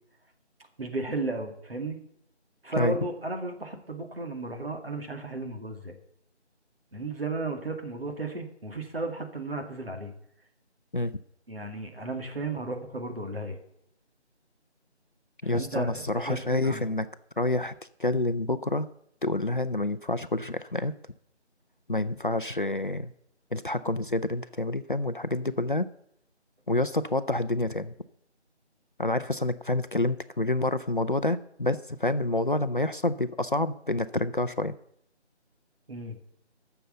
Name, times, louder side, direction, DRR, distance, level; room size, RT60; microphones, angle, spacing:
voice 1, 0.8-2.0 2.6-5.9 6.9-10.1 11.5-13.6 15.4-16.9 35.9-36.1, right 2 dB, 55° right, 3 dB, 2.3 m, -34 dB
voice 2, 15.4-17.1 17.4-17.7 18.0-18.9 19.2-20.9 21.9-23.1 23.5-25.9 26.7-27.9 29.0-34.7, left 2 dB, 45° left, 12 dB, 0.5 m, -28 dB
10.5 x 6.9 x 7.8 m, 0.74 s
figure-of-eight pair, 165°, 35 cm